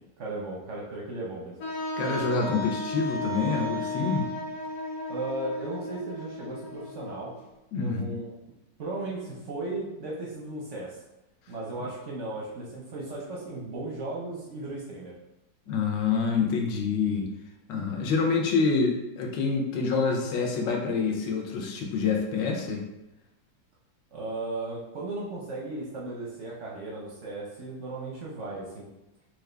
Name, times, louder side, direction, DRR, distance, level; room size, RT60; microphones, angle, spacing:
voice 1, 0.2-1.6 5.1-7.3 7.7-8.4 8.8-11.0 11.5-15.1 24.1-28.9, right 2 dB, 65° right, -4 dB, 0.7 m, -36 dB
Wind instrument woodwind instrument, 1.6-7.4, left 1 dB, 60° left, 1.0 m, -34 dB
voice 2, 2.0-4.3 7.7-8.1 15.7-17.3 17.7-22.8, left 4 dB, 80° left, 2 dB, 1.3 m, -27 dB
4.5 x 2.3 x 3.2 m, 0.92 s
omnidirectional pair, 2.0 m